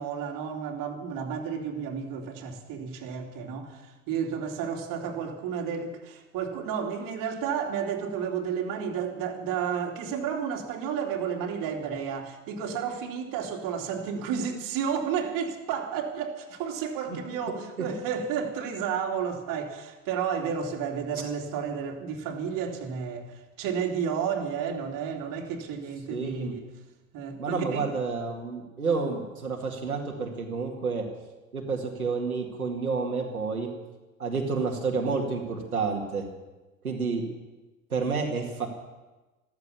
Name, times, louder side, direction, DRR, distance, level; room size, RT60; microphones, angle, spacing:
voice 1, 0.0-26.7 27.1-27.8, right 7 dB, 50° right, 2 dB, 2.9 m, -32 dB
voice 2, 26.1-26.5 27.4-31.0 31.5-33.7 34.2-36.2 36.8-37.2 37.9-38.7, right 4 dB, 90° right, 1 dB, 2.2 m, -29 dB
14.5 x 14.0 x 7.0 m, 1.1 s
figure-of-eight pair, 75°, 42 cm